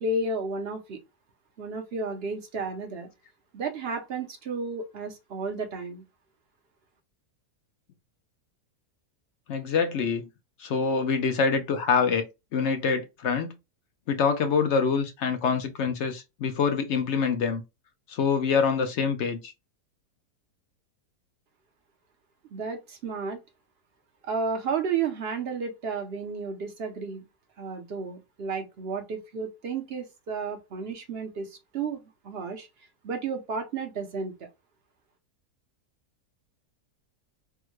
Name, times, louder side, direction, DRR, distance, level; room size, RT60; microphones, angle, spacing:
voice 1, 0.0-1.0 1.6-3.1 3.5-6.0 22.5-23.4 24.2-27.2 27.6-32.7 33.0-34.3, right 4 dB, 55° right, 0.7 m, -32 dB
voice 2, 9.5-10.3 10.6-12.2 12.5-13.5 14.1-17.6 18.1-19.5, left 5 dB, 65° left, 0.7 m, -25 dB
3.5 x 2.1 x 3.0 m
omnidirectional pair, 1.7 m